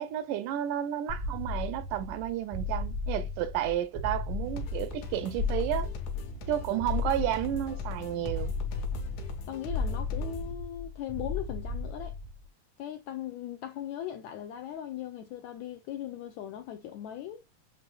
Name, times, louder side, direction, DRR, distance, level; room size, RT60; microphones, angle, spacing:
voice 1, 0.0-5.9 6.5-8.5, right 12 dB, 80° right, 2.0 m, -32 dB
sound 1, 1.1-12.4, left 4 dB, 25° left, 0.8 m, -34 dB
sound 2, 4.4-10.5, left 3 dB, 70° left, 2.1 m, -43 dB
voice 2, 9.5-12.2 12.8-17.4, left 11 dB, 85° left, 1.7 m, -39 dB
8.1 x 2.8 x 2.3 m
omnidirectional pair, 3.8 m